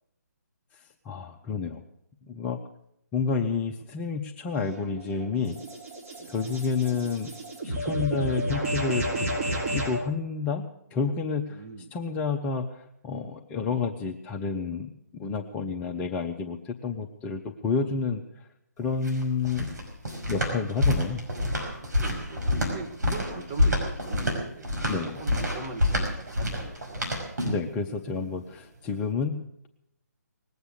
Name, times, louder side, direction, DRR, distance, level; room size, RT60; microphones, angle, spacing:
voice 1, 0.7-1.8 2.3-2.6 3.1-5.6 6.3-7.3 7.6-9.3 9.7-11.6 11.9-18.2 18.8-19.7 20.3-21.2 24.9-25.2 27.4-29.7, left 5 dB, 15° left, 3 dB, 0.6 m, -30 dB
sound 1, 4.5-10.0, right 1 dB, 55° right, 6.0 m, -32 dB
voice 2, 11.5-11.9 22.0-27.1, right 3 dB, 25° right, 3 dB, 1.5 m, -41 dB
sound 2, 18.8-27.7, left 1 dB, 75° right, 5.4 m, -27 dB
19.5 x 8.1 x 8.5 m, 0.75 s
figure-of-eight pair, 140°, 9 cm